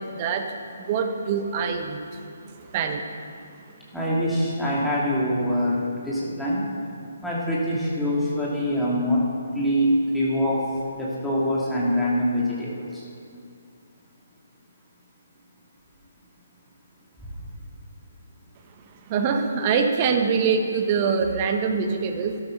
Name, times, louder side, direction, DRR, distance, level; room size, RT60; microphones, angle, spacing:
voice 1, 0.1-0.4 0.8-2.0 2.7-3.0 19.1-22.4, right 5 dB, 30° right, 5 dB, 1.2 m, -24 dB
voice 2, 3.9-6.6 7.2-9.2 9.5-10.6 10.9-13.1 17.2-17.4, equal, ahead, -8 dB, 2.9 m, -24 dB
12.5 x 12.5 x 4.2 m, 2.5 s
figure-of-eight pair, 140°, 0 cm